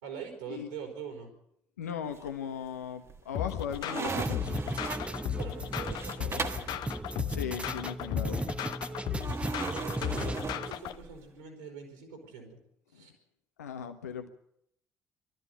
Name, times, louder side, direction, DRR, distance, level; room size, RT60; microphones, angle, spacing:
voice 1, 0.0-1.3 4.9-6.9 8.9-12.6 12.9-13.1, right 6 dB, 75° right, 3 dB, 4.2 m, -44 dB
voice 2, 1.8-4.5 7.3-8.4 12.9-13.1 13.6-14.3, left 8 dB, 80° left, 7 dB, 1.4 m, -38 dB
sound 1, 2.1-2.7 3.1-6.8 9.2-11.3, right 4 dB, 35° right, 1.5 m, -38 dB
sound 2, 3.3-11.0, left 12 dB, 55° left, 0.8 m, -36 dB
sound 3, 4.1-10.7, right 2 dB, 15° right, 1.2 m, -37 dB
22.5 x 13.5 x 9.4 m, 0.74 s
figure-of-eight pair, 45°, 8 cm